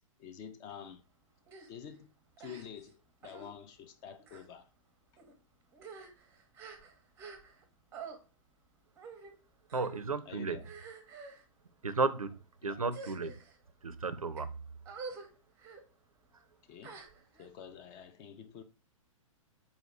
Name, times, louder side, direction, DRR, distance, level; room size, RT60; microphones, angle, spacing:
voice 1, 0.2-1.0 1.7-2.1 2.4-4.7 10.3-10.7 12.6-12.8 16.7-17.0 17.4-18.6, left 8 dB, 20° left, 0.4 m, -48 dB
sound 1, 1.5-1.7 2.4-2.9 3.2-3.5 4.2-4.5 5.2-5.3 5.7-7.6 7.9-8.2 9.0-9.3 9.7-10.1 10.6-11.4 12.1-12.4 12.9-13.6 14.1-14.4 14.9-15.3 15.6-15.8 16.8-17.5, right 5 dB, 15° right, 0.6 m, -48 dB
voice 2, 9.7-10.6 11.8-12.4 12.6-13.3 13.8-14.5, right 4 dB, 85° right, 0.4 m, -33 dB
4.2 x 2.8 x 3.5 m
figure-of-eight pair, 115°, 18 cm